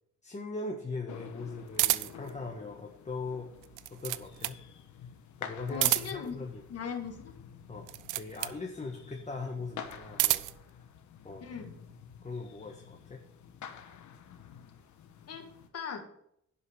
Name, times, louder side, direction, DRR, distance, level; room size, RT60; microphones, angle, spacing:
voice 1, 0.2-3.5 3.9-4.6 5.4-6.6 7.7-10.8 11.2-11.4 12.2-13.2, left 3 dB, 25° left, 2 dB, 1.4 m, -40 dB
sound 1, 1.1-15.7, left 7 dB, 75° left, 1.2 m, -49 dB
sound 2, 1.7-2.3 3.6-4.6 5.7-6.3 7.8-8.6 9.9-10.6, right 17 dB, 90° right, 0.5 m, -30 dB
voice 2, 5.7-6.4 6.7-7.4 11.4-11.7 15.3-16.1, left 6 dB, 55° left, 5 dB, 1.6 m, -39 dB
11.0 x 5.6 x 5.1 m, 0.72 s
cardioid pair, 90°, 30 cm